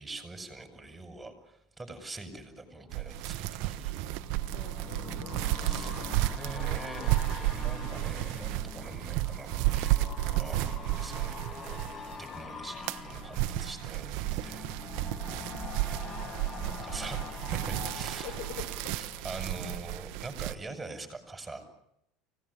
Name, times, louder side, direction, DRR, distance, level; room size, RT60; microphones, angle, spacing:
voice 1, 0.0-4.0 5.5-5.9 6.2-11.8 12.2-14.8 16.8-18.3 18.9-21.7, right 2 dB, 10° right, 7 dB, 6.1 m, -44 dB
sound 1, 2.5-20.3 20.7-20.8, left 6 dB, 35° left, 1.4 m, -44 dB
sound 2, 2.9-12.3 12.6-20.5, right 17 dB, 70° right, 1.0 m, -32 dB
voice 2, 4.5-5.5 16.0-16.5 18.2-19.2 19.6-19.7, left 7 dB, 70° left, 10 dB, 4.3 m, -46 dB
25.5 x 18.0 x 9.9 m, 0.77 s
supercardioid pair, 115°, 0 cm